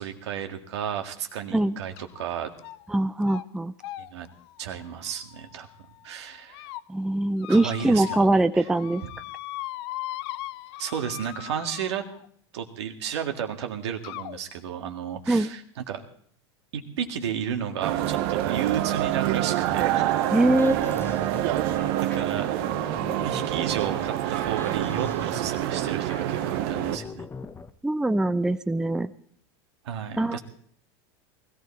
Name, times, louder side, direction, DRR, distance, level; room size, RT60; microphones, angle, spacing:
voice 1, 0.0-2.5 4.1-4.3 4.6-5.7 6.0-6.6 7.5-8.7 9.0-9.1 10.8-12.0 12.5-16.0 16.7-20.3 21.0-21.1 22.1-22.6 23.2-27.3 29.8-30.4, right 8 dB, 80° right, 4 dB, 2.0 m, -33 dB
sound 1, 2.0-2.2 2.6-2.9 3.2-3.4 3.8-5.7 6.2-6.8 7.4-8.4 8.6-12.3 13.2-13.3 14.0-14.4, left 16 dB, 65° left, 0.6 m, -39 dB
voice 2, 2.9-3.7 6.9-9.0 15.3-15.5 20.3-20.8 27.8-29.1 30.2-30.4, right 2 dB, 5° right, 11 dB, 0.5 m, -22 dB
sound 2, 17.8-27.0, right 13 dB, 60° right, 0.9 m, -26 dB
sound 3, 19.7-27.7, left 4 dB, 15° left, 1.0 m, -41 dB
20.0 x 15.0 x 4.2 m, 0.62 s
hypercardioid pair, 105°, 14 cm